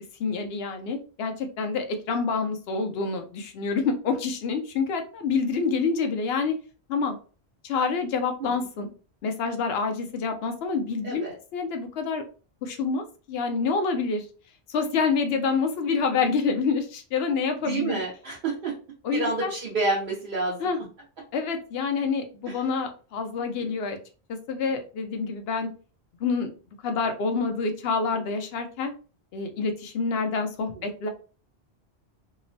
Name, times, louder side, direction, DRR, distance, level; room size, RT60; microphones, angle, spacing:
voice 1, 0.2-6.5 6.9-7.2 7.6-8.9 9.2-11.2 11.5-12.2 12.6-14.3 14.7-18.0 19.0-19.5 20.6-20.8 21.3-24.0 24.3-25.7 26.2-26.5 26.8-28.9 29.3-31.1, left 5 dB, 70° left, 6 dB, 0.8 m, -27 dB
voice 2, 17.6-18.7 19.1-20.7 22.5-22.6 23.6-23.7, right 3 dB, 60° right, -5 dB, 0.9 m, -29 dB
2.9 x 2.0 x 2.6 m, 0.37 s
omnidirectional pair, 1.1 m